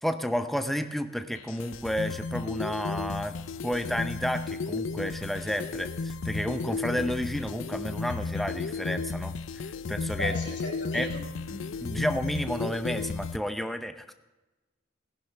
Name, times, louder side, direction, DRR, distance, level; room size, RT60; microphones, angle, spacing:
voice 1, 0.0-3.4 3.6-10.4 10.9-11.1 11.8-14.1, equal, ahead, 8 dB, 0.7 m, -31 dB
sound 1, 1.4-13.4, left 4 dB, 85° left, 0.5 m, -34 dB
voice 2, 10.1-11.7, left 2 dB, 65° left, -2 dB, 5.1 m, -38 dB
18.5 x 11.5 x 3.4 m, 1.1 s
head